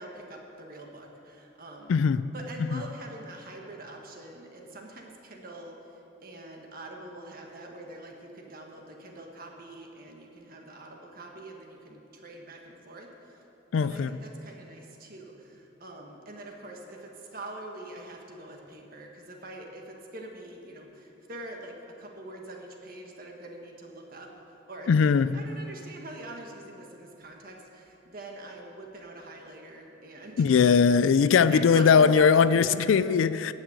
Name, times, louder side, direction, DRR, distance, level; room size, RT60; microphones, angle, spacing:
voice 1, 0.0-2.0 2.3-13.4 13.8-30.7 31.2-32.9, right 1 dB, 50° right, 1.6 m, -44 dB
voice 2, 1.9-2.3 2.7-2.8 13.7-14.2 24.9-25.4 30.4-33.5, left 6 dB, 85° left, 0.4 m, -20 dB
15.0 x 6.4 x 8.8 m
head